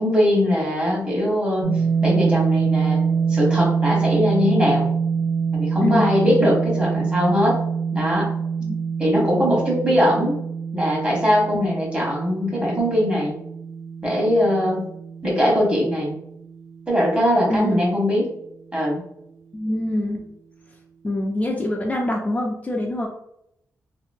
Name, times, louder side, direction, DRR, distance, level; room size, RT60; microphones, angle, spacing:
voice 1, 0.0-3.0 3.3-4.9 5.5-7.6 7.9-8.3 9.0-10.4 10.7-13.4 14.0-14.8 15.2-16.1 16.9-18.3 18.7-19.0, left 1 dB, 20° right, -3 dB, 1.1 m, -21 dB
sound 1, 1.6-17.6, right 6 dB, 75° right, 0.4 m, -25 dB
voice 2, 5.8-6.1 8.6-8.8 11.5-11.7 17.5-17.8 19.5-20.2 21.0-23.1, left 1 dB, 25° left, -1 dB, 0.4 m, -24 dB
2.8 x 2.5 x 2.6 m, 0.77 s
wide cardioid pair, 110°, 6 cm